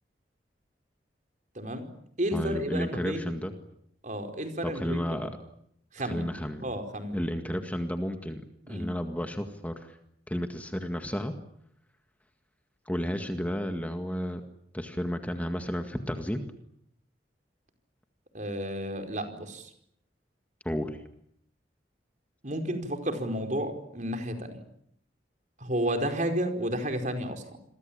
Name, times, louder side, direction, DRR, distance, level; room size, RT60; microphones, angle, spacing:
voice 1, 1.5-1.9 2.2-3.4 4.0-5.3 5.9-6.3 6.6-7.2 8.6-8.9 18.3-19.7 22.4-24.6 25.6-27.4, right 1 dB, 45° right, 6 dB, 4.8 m, -32 dB
voice 2, 2.3-3.5 4.6-5.3 6.0-6.7 7.1-10.0 10.3-11.3 12.9-14.4 14.7-16.4 20.6-21.0, equal, 10° left, 6 dB, 1.9 m, -32 dB
29.0 x 23.0 x 8.7 m, 0.71 s
head